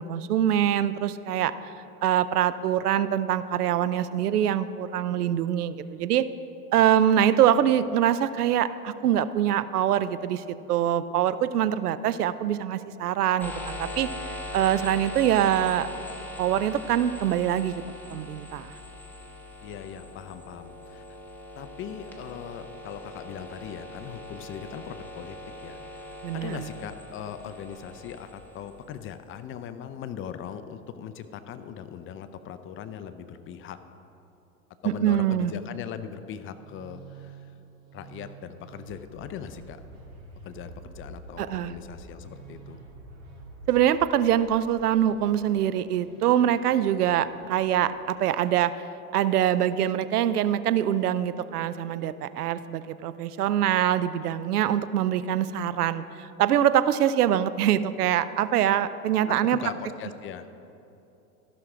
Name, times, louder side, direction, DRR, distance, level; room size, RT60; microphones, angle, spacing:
voice 1, 0.0-1.5 2.0-6.3 6.7-14.1 14.5-15.9 16.4-17.8 18.1-18.7 26.2-26.7 34.8-35.5 41.4-41.7 43.7-48.8 49.1-59.6, right 10 dB, 85° right, 14 dB, 0.5 m, -24 dB
sound 1, 13.4-29.1, left 1 dB, 5° left, 1.2 m, -41 dB
voice 2, 19.6-21.2 21.6-25.4 25.6-33.8 34.8-37.4 37.9-39.8 40.4-42.8 59.2-59.4 59.6-60.5, left 8 dB, 30° left, 10 dB, 0.5 m, -40 dB
Musical instrument, 36.2-48.0, right 3 dB, 70° right, 2.4 m, -48 dB
14.0 x 6.1 x 4.9 m, 2.9 s
hypercardioid pair, 95°, 44 cm